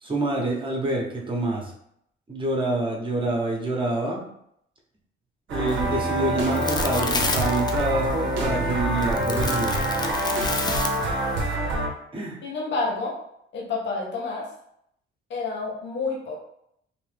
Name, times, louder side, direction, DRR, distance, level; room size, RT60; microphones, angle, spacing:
voice 1, 0.0-1.7 2.3-4.2 5.5-9.9 12.1-12.4, right 2 dB, 25° right, -2 dB, 1.0 m, -27 dB
sound 1, 5.5-11.9, right 1 dB, 70° right, 0.8 m, -26 dB
sound 2, 5.7-11.6, left 3 dB, 20° left, 0.4 m, -32 dB
voice 2, 12.4-13.2 13.5-14.5 15.3-16.4, left 3 dB, 65° left, -2 dB, 0.9 m, -29 dB
3.0 x 2.6 x 3.3 m, 0.73 s
cardioid pair, 90°, 20 cm